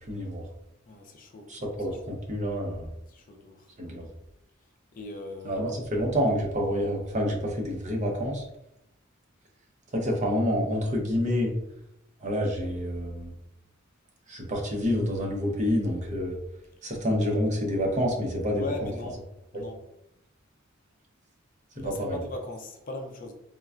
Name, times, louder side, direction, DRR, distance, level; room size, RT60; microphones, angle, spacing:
voice 1, 0.1-0.5 1.5-2.9 3.8-4.1 5.4-8.4 9.9-11.5 12.2-13.3 14.3-16.4 16.8-18.7 21.8-22.2, equal, 35° right, 0 dB, 0.6 m, -28 dB
voice 2, 0.9-2.0 3.1-3.7 4.9-5.6 18.5-19.2 19.5-19.8 21.7-23.3, left 1 dB, 40° left, 3 dB, 0.4 m, -39 dB
3.7 x 2.1 x 2.4 m, 0.83 s
head